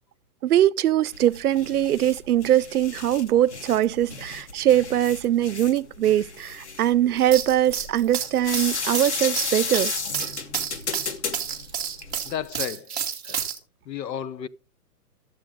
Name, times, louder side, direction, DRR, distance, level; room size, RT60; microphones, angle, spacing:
voice 1, 0.4-9.9, right 12 dB, 65° right, 0.5 m, -22 dB
sound 1, 1.1-12.4, left 4 dB, 45° left, 1.1 m, -33 dB
sound 2, 7.2-13.6, right 8 dB, 5° right, 0.6 m, -30 dB
voice 2, 12.2-13.0 13.2-13.4 13.8-14.5, left 9 dB, 85° left, 1.0 m, -32 dB
13.0 x 7.7 x 3.8 m
hypercardioid pair, 175°, 49 cm